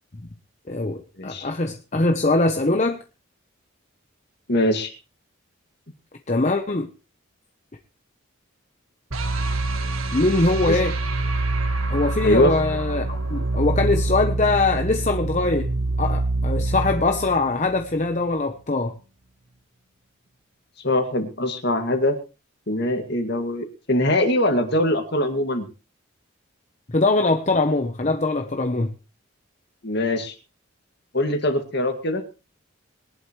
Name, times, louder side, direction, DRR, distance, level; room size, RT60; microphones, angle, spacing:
voice 1, 0.7-3.0 6.3-6.9 10.1-10.9 11.9-15.7 16.0-18.9 26.9-28.9, left 2 dB, 35° left, 6 dB, 0.9 m, -22 dB
voice 2, 1.2-1.5 4.5-4.9 10.7-10.8 12.2-12.5 20.8-22.2 22.7-25.7 29.8-30.3 31.1-32.2, left 1 dB, 55° left, 6 dB, 2.2 m, -22 dB
sound 1, 9.1-18.2, right 2 dB, 85° right, 1.9 m, -25 dB
21.5 x 11.0 x 3.2 m, 0.32 s
head